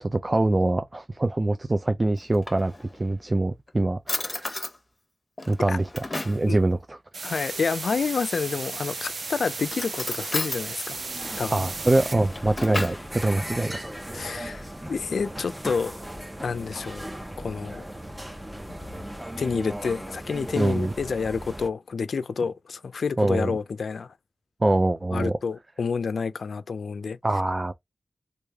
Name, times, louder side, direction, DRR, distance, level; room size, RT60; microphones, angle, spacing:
voice 1, 0.0-4.5 5.5-7.0 11.5-13.7 20.6-20.9 23.2-23.5 24.6-25.4 27.2-27.7, right 2 dB, 30° right, 0.4 m, -24 dB
Drawer open or close, 2.2-3.1 3.7-3.8 4.1-4.8 5.4-6.5 8.3-8.9 9.6-10.6 12.0-13.1, left 2 dB, 35° left, 0.9 m, -33 dB
sound 1, 7.1-12.1, right 3 dB, 70° right, 0.7 m, -35 dB
voice 2, 7.2-11.0 11.4-11.7 14.1-16.0 16.4-17.0 17.4-17.9 19.4-24.1 25.1-27.2, left 5 dB, 90° left, 0.3 m, -29 dB
sound 2, 10.9-21.7, right 1 dB, 15° right, 0.8 m, -37 dB
3.2 x 2.5 x 3.4 m
wide cardioid pair, 65°, 0 cm